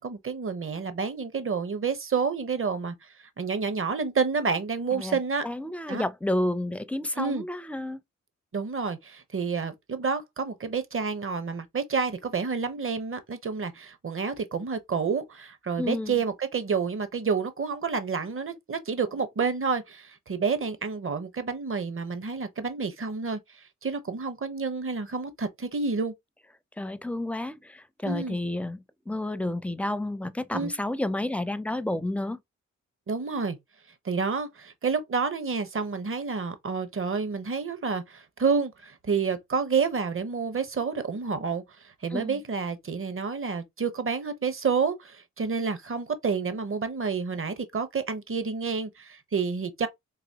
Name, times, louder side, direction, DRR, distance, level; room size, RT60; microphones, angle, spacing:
voice 1, 0.0-3.1 3.4-5.4 5.9-6.0 7.2-7.4 8.5-23.4 23.8-26.1 28.0-28.4 30.5-30.7 33.1-33.6 34.0-49.9, right 5 dB, 45° right, 1.0 m, -29 dB
voice 2, 5.4-8.0 15.8-16.2 26.8-32.4 42.1-42.4, left 1 dB, 5° left, 0.5 m, -30 dB
4.0 x 2.8 x 2.8 m
supercardioid pair, 45°, 31 cm